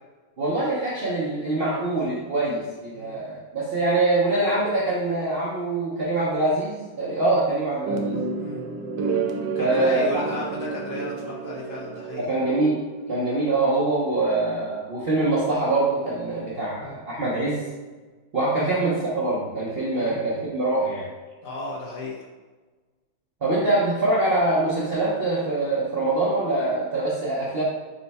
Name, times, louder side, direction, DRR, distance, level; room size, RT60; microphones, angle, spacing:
voice 1, 0.4-8.2 9.6-10.1 12.2-12.8 13.1-17.6 18.3-21.1 23.4-27.6, right 2 dB, 55° right, -6 dB, 0.6 m, -24 dB
sound 1, 7.9-13.0, right 4 dB, 80° right, 1.3 m, -30 dB
voice 2, 9.6-12.3 16.7-17.0 18.6-18.7 19.9-20.2 21.4-22.3, left 2 dB, 60° left, -4 dB, 1.0 m, -34 dB
5.3 x 2.2 x 4.0 m, 1.3 s
omnidirectional pair, 2.0 m